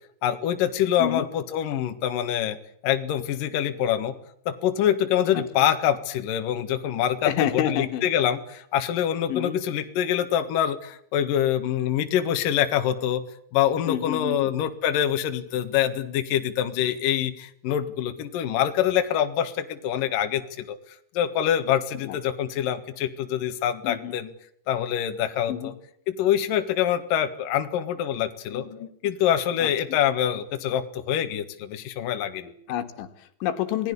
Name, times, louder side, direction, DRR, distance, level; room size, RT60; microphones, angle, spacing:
voice 1, 0.2-2.6 2.8-4.1 4.5-13.2 13.5-20.8 21.1-24.3 24.7-25.7 26.1-32.5, left 10 dB, 60° left, 7 dB, 2.8 m, -25 dB
voice 2, 7.2-8.1 9.3-9.6 13.9-14.5 22.0-22.2 23.8-24.2 25.5-25.7 29.6-30.0 32.7-33.9, left 11 dB, 80° left, 7 dB, 4.0 m, -29 dB
27.5 x 19.0 x 8.4 m, 0.65 s
omnidirectional pair, 5.4 m